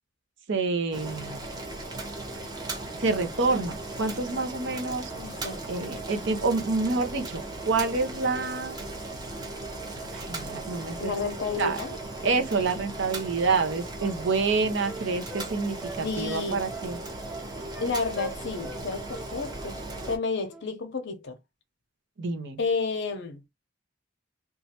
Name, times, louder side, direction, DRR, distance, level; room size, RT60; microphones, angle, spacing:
voice 1, 0.5-1.5 3.0-5.1 5.7-8.8 10.1-11.0 11.6-11.8 12.2-17.0 22.2-22.6, right 4 dB, 65° right, 0.7 m, -27 dB
Boiling, 0.9-20.2, right 2 dB, 20° right, 0.8 m, -37 dB
voice 2, 5.2-5.6 11.0-12.0 16.0-16.6 17.8-19.7 20.1-21.4 22.6-23.4, left 4 dB, 65° left, 0.6 m, -31 dB
Wind instrument woodwind instrument, 13.5-15.5 15.8-16.9 17.3-17.9 18.1-18.8 19.1-19.3 19.6-20.2 20.5-20.7, right 3 dB, 5° right, 0.3 m, -43 dB
3.1 x 2.3 x 2.8 m
head